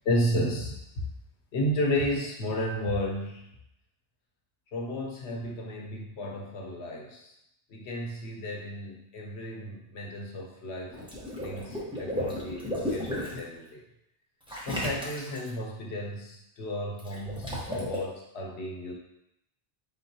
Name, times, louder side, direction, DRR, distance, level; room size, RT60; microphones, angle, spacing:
voice 1, 0.0-1.1 1.5-3.5 4.7-7.3 7.7-11.0 11.4-13.8 14.7-18.9, left 1 dB, 90° left, 0 dB, 1.1 m, -33 dB
Water / Liquid, 10.9-13.4 14.5-15.5 17.0-18.0, left 1 dB, 5° right, 1.0 m, -34 dB
4.5 x 3.8 x 2.8 m, 0.81 s
omnidirectional pair, 1.1 m